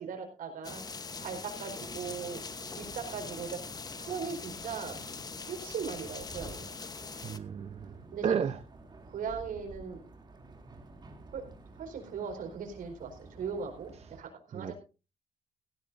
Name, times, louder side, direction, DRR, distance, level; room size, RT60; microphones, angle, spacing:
voice 1, 0.0-2.4 2.8-3.6 4.0-5.0 5.4-6.7 8.1-8.3 9.1-10.0 11.3-11.4 11.8-14.7, right 6 dB, 80° right, 4 dB, 4.4 m, -39 dB
sound 1, 0.6-7.4, left 4 dB, 30° left, 1.0 m, -42 dB
sound 2, 1.7-14.2, right 2 dB, 30° right, 2.7 m, -51 dB
voice 2, 7.2-8.6 14.0-14.1 14.5-14.7, right 7 dB, 50° right, 9 dB, 0.7 m, -33 dB
17.0 x 16.0 x 2.6 m, 0.32 s
cardioid pair, 120°, 14 cm